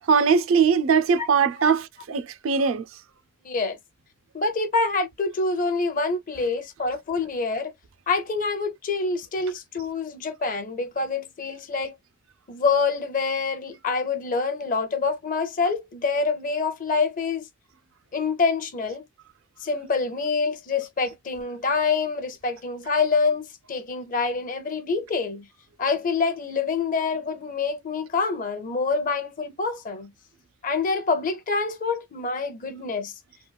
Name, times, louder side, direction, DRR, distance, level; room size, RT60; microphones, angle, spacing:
voice 1, 0.1-2.8, right 6 dB, 70° right, 0.4 m, -21 dB
voice 2, 3.4-3.8 4.3-7.7 8.1-11.9 12.5-17.5 18.1-19.0 19.6-25.5 25.8-30.1 30.6-33.1, left 4 dB, 40° left, 0.6 m, -26 dB
3.8 x 2.2 x 2.2 m
head